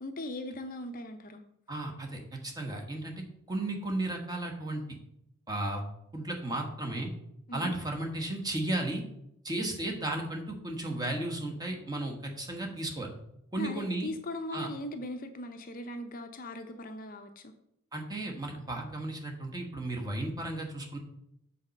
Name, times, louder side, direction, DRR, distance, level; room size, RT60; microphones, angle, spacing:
voice 1, 0.0-1.4 7.5-7.7 13.6-17.5, left 1 dB, 40° left, 7 dB, 0.6 m, -39 dB
voice 2, 1.7-4.8 5.5-5.8 6.1-7.1 7.5-9.0 9.4-13.1 13.5-14.1 14.5-14.7 17.9-21.0, right 1 dB, 15° right, 1 dB, 1.2 m, -34 dB
7.5 x 4.1 x 6.4 m, 0.79 s
head